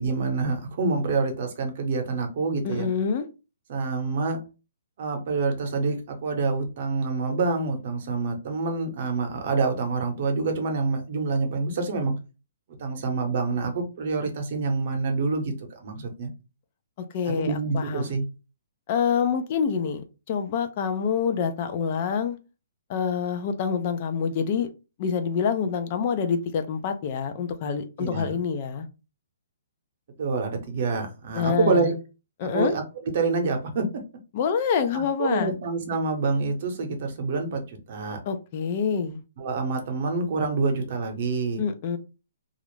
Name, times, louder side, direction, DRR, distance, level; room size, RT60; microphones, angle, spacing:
voice 1, 0.0-2.9 3.7-4.4 5.0-12.1 12.8-16.3 17.4-18.2 28.0-28.4 30.2-31.9 32.4-32.8 33.1-34.0 34.9-38.2 39.4-41.6, right 4 dB, 50° right, 0.8 m, -27 dB
voice 2, 2.6-3.3 17.0-18.1 18.9-22.4 22.9-24.7 25.0-28.9 31.3-31.9 32.4-32.8 34.3-35.5 38.3-39.2 41.6-42.0, left 6 dB, 35° left, 0.4 m, -26 dB
2.4 x 2.0 x 3.1 m
hypercardioid pair, 160°, 0 cm